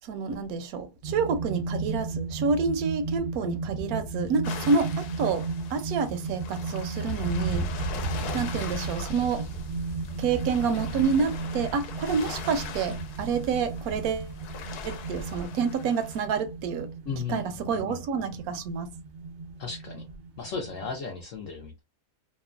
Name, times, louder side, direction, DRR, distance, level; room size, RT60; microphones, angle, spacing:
voice 1, 0.1-5.4 5.7-7.7 8.3-9.5 10.2-14.3 14.8-16.9 17.3-18.9, right 5 dB, 75° right, 1.0 m, -28 dB
sound 1, 1.0-20.9, right 4 dB, 90° right, 0.5 m, -35 dB
sound 2, 4.4-16.2, left 7 dB, 90° left, 1.1 m, -42 dB
Thunder / Rain, 7.1-15.5, right 2 dB, 45° left, 1.2 m, -37 dB
voice 2, 17.1-18.0 19.6-20.0 20.4-21.8, left 5 dB, 65° left, 0.8 m, -35 dB
2.9 x 2.2 x 2.3 m
omnidirectional pair, 1.6 m